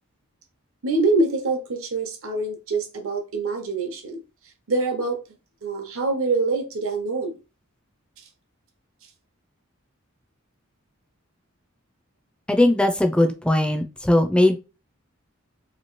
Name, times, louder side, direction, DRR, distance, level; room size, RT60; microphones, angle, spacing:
voice 1, 0.8-4.2 4.7-5.2 5.6-7.4, right 3 dB, 85° right, 0.8 m, -25 dB
voice 2, 12.5-14.6, left 1 dB, 5° left, 0.4 m, -19 dB
3.0 x 2.7 x 3.0 m
head